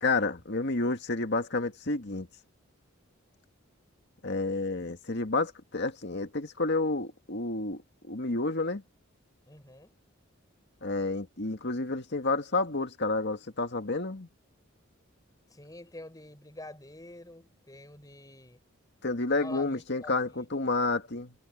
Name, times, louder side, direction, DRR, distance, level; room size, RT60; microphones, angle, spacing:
voice 1, 0.0-2.3 4.2-8.8 10.8-14.3 19.0-21.3, left 3 dB, 55° left, 2.0 m, -30 dB
voice 2, 9.5-9.9 15.5-18.6 19.3-20.5, left 1 dB, 15° left, 5.7 m, -47 dB
head